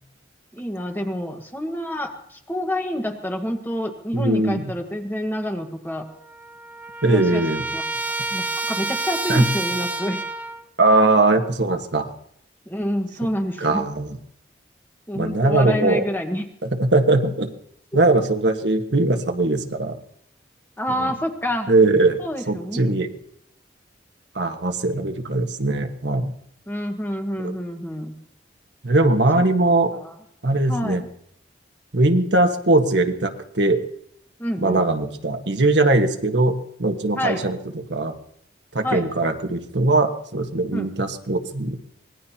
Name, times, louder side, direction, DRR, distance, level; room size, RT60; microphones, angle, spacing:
voice 1, 0.5-6.1 7.1-7.4 7.7-7.8 8.3-10.2 12.7-13.8 15.1-16.4 20.8-21.7 22.2-23.0 26.7-28.1 29.3-29.4 29.9-30.2 30.7-31.1 34.4-34.8 37.1-37.4 38.8-39.1 40.7-40.9, equal, 10° left, 4 dB, 1.5 m, -28 dB
voice 2, 4.1-4.7 7.0-7.6 9.3-9.5 10.8-12.1 13.6-14.2 15.1-16.0 16.6-17.5 17.9-20.0 21.0-21.1 21.7-22.2 22.5-23.1 24.3-26.3 27.4-27.5 28.8-29.9 30.4-31.0 31.9-33.8 34.6-36.5 36.8-38.1 38.7-41.8, right 2 dB, 70° right, 5 dB, 1.5 m, -20 dB
Trumpet, 5.9-6.0 6.2-10.6, right 2 dB, 10° right, 0.7 m, -29 dB
25.0 x 19.5 x 2.9 m, 0.70 s
head